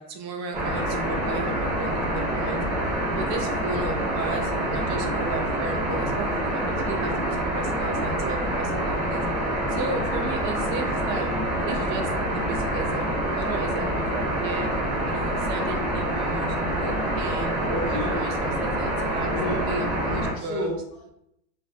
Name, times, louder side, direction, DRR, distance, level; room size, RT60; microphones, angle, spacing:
voice 1, 0.0-2.6 3.1-9.2 9.7-11.3 11.7-14.7 15.0-17.5 17.9-19.3 19.7-20.7, right 3 dB, 85° right, 5 dB, 0.7 m, -35 dB
sound 1, 0.5-20.3, right 1 dB, 45° right, 1.1 m, -26 dB
voice 2, 17.4-18.2 19.1-19.8 20.3-21.1, left 1 dB, 25° left, -7 dB, 0.4 m, -32 dB
2.4 x 2.2 x 2.5 m, 0.76 s
supercardioid pair, 155°, 48 cm